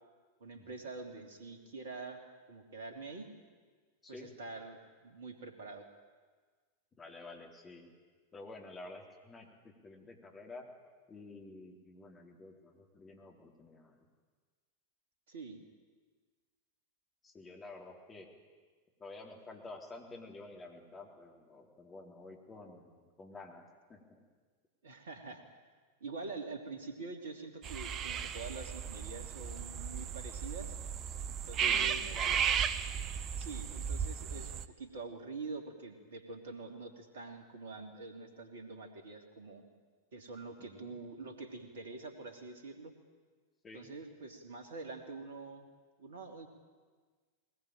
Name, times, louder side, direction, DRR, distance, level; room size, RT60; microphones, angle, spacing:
voice 1, 0.4-2.2 2.5-3.3 4.1-4.8 5.0-5.8 15.3-15.6 24.8-25.4 26.0-30.7 31.4-32.0 33.4-39.6 40.1-42.9 43.7-45.7 46.0-46.5, right 3 dB, 60° right, 5 dB, 3.2 m, -45 dB
voice 2, 7.0-7.9 8.3-10.7 11.1-14.1 17.2-18.3 19.0-24.2 31.6-32.6 40.6-41.0 43.6-43.9, left 2 dB, 20° left, 1 dB, 3.9 m, -50 dB
sound 1, 27.6-34.7, right 8 dB, 30° right, 0.9 m, -35 dB
21.0 x 19.5 x 9.1 m, 1.5 s
figure-of-eight pair, 90°, 0 cm